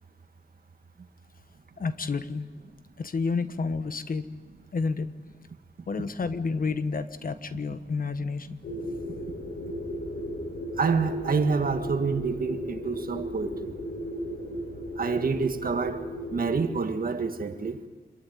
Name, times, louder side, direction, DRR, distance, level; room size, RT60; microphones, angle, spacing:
voice 1, 1.8-2.5 3.0-4.3 4.7-5.1 5.9-8.6, left 4 dB, 55° left, 1.3 m, -30 dB
sound 1, 8.6-16.6, equal, 70° left, 6.0 m, -35 dB
voice 2, 10.8-13.7 15.0-17.8, right 4 dB, 55° right, 1.8 m, -27 dB
26.5 x 22.0 x 9.4 m
wide cardioid pair, 120°, 17 cm